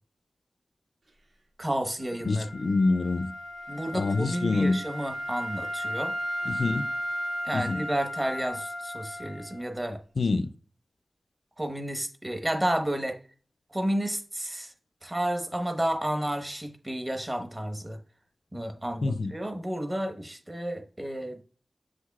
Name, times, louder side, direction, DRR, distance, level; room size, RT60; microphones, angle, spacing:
voice 1, 1.6-2.5 3.7-6.1 7.4-10.0 11.6-13.2 13.7-14.7 15.0-18.0 18.5-21.4, right 1 dB, 25° right, 1.1 m, -31 dB
Wind instrument woodwind instrument, 2.0-9.8, equal, 80° right, 2.2 m, -35 dB
voice 2, 2.2-3.3 3.9-4.8 6.5-6.9 7.5-7.8 10.2-10.5 19.0-19.3, left 3 dB, 70° left, 0.4 m, -26 dB
7.8 x 6.4 x 2.4 m
wide cardioid pair, 65°, 0 cm